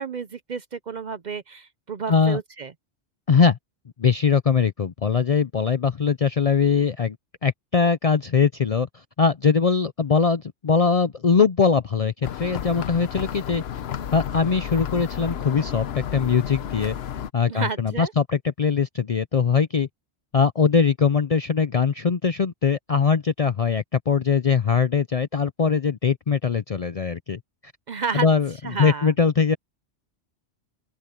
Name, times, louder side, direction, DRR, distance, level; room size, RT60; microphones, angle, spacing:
voice 1, 0.0-2.7 17.5-18.1 27.9-28.3 28.6-29.1, right 5 dB, 45° right, 0.7 m, -31 dB
voice 2, 2.1-2.4 3.3-3.6 4.0-7.2 7.4-13.6 14.1-17.0 17.3-19.9 20.3-27.4 28.1-28.5 28.8-29.6, left 5 dB, 45° left, 0.5 m, -21 dB
sound 1, 12.2-17.3, left 9 dB, 65° left, 0.9 m, -32 dB
open air
omnidirectional pair, 1.2 m